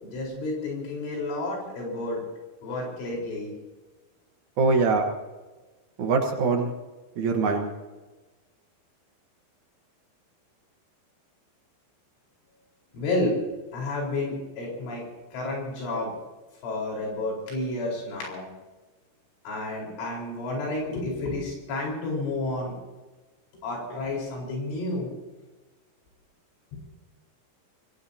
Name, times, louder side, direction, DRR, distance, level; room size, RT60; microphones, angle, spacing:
voice 1, 0.0-2.2 2.6-3.5 12.9-13.4 13.7-15.0 15.3-16.1 16.6-18.5 19.5-22.8 23.6-25.1 26.7-26.8, left 2 dB, 80° left, -2 dB, 6.9 m, -30 dB
voice 2, 4.6-5.1 6.0-6.7 7.2-7.7, right 4 dB, 80° right, 3 dB, 1.7 m, -23 dB
26.0 x 19.0 x 2.8 m, 1.2 s
omnidirectional pair, 5.4 m